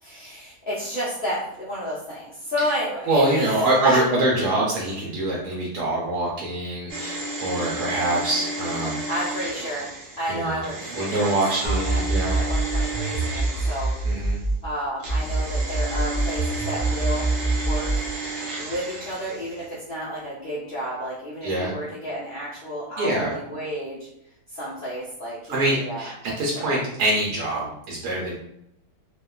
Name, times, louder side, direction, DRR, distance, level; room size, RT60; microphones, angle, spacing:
voice 1, 0.0-4.0 9.1-9.9 10.2-11.3 11.6-12.0 12.3-13.9 14.6-18.0 18.6-24.1 24.5-26.1 26.5-26.8, equal, 75° left, -8 dB, 0.5 m, -31 dB
voice 2, 3.0-9.0 10.3-10.6 10.9-12.4 14.0-14.4 21.4-21.7 23.0-23.4 25.5-28.4, right 1 dB, 85° right, -4 dB, 1.2 m, -24 dB
sound 1, 6.9-14.5 15.0-19.7 20.0-20.1, right 2 dB, 60° right, 0.8 m, -33 dB
sound 2, 11.6-14.7 15.1-18.1, right 2 dB, 20° right, 0.7 m, -25 dB
2.8 x 2.2 x 2.2 m, 0.77 s
omnidirectional pair, 1.7 m